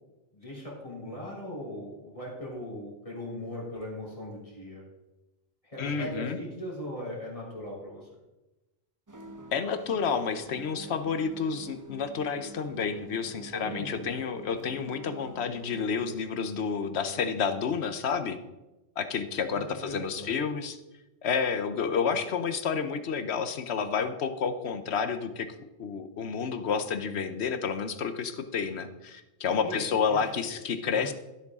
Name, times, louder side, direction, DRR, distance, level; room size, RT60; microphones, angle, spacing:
voice 1, 0.3-4.9 5.6-8.1 13.5-14.2 19.7-20.4 22.1-22.2 29.6-29.8 30.1-30.2 30.8-31.1, left 1 dB, 30° left, -4 dB, 3.4 m, -39 dB
voice 2, 5.8-6.4 9.5-18.4 19.0-20.8 21.2-25.5 25.8-31.1, left 6 dB, 75° left, 10 dB, 1.1 m, -30 dB
sound 1, 9.1-16.1, right 2 dB, 20° right, 0.7 m, -48 dB
13.0 x 8.0 x 3.6 m, 1.0 s
omnidirectional pair, 1.1 m